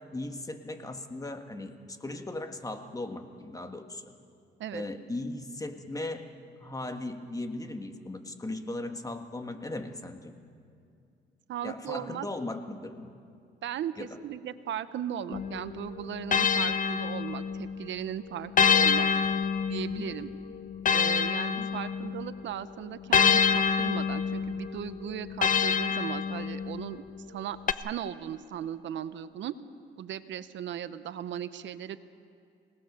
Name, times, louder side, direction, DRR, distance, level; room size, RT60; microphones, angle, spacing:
voice 1, 0.0-4.1 4.7-6.2 6.6-10.4 11.6-13.1 14.0-14.1 20.0-20.2 21.6-21.8, left 2 dB, 15° left, 6 dB, 1.7 m, -38 dB
voice 2, 11.5-12.3 13.6-19.1 19.7-20.3 20.9-27.0 27.3-29.5 30.0-32.0, right 10 dB, 70° right, 13 dB, 0.8 m, -37 dB
sound 1, 15.3-17.8 18.6-22.3 23.1-26.9 27.7-27.8, left 6 dB, 45° left, 0.8 m, -27 dB
25.0 x 18.5 x 6.8 m, 2.4 s
cardioid pair, 90°, 20 cm